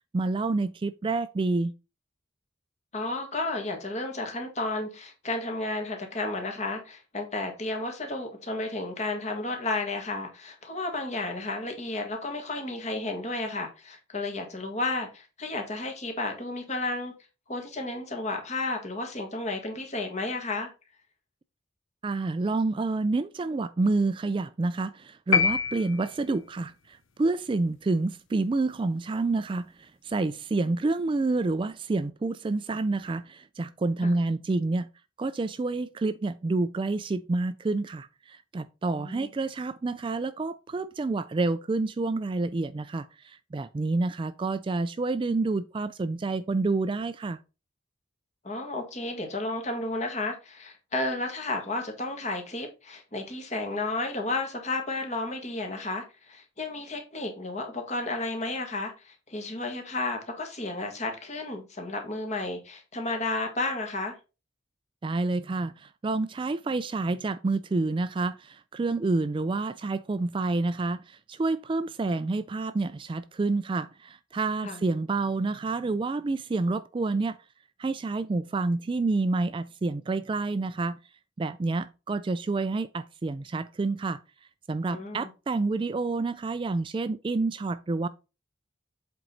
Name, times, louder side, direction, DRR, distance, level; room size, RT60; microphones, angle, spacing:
voice 1, 0.1-1.7 22.0-34.9 35.2-47.4 65.0-77.4 77.8-81.0 81.4-84.2 84.7-88.1, right 3 dB, 25° right, 0.3 m, -28 dB
voice 2, 2.9-17.1 17.5-20.7 34.0-34.2 39.0-39.3 48.4-64.2 74.6-74.8 84.9-85.3, left 2 dB, 35° left, 1.8 m, -32 dB
sound 1, 25.3-26.6, left 6 dB, 90° left, 0.7 m, -25 dB
7.7 x 4.5 x 4.0 m
head